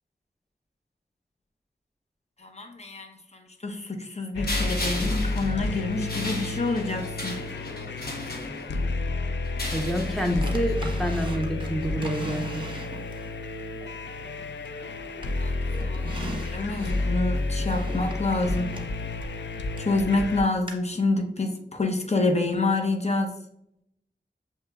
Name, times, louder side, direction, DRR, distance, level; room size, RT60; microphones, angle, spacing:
voice 1, 2.4-7.4 15.3-18.7 19.8-23.3, left 2 dB, 40° left, 3 dB, 0.8 m, -27 dB
sound 1, 4.3-20.4, left 2 dB, 85° left, 0.4 m, -31 dB
sound 2, 4.5-8.9 9.4-10.7, left 1 dB, 60° left, 1.1 m, -36 dB
voice 2, 9.7-12.6, equal, ahead, 2 dB, 0.7 m, -28 dB
Drawer open or close, 10.4-13.3 13.8-14.9 15.2-19.9 20.7-20.8, right 2 dB, 30° right, 1.0 m, -40 dB
7.0 x 3.0 x 2.3 m, 0.76 s
wide cardioid pair, 45°, 18 cm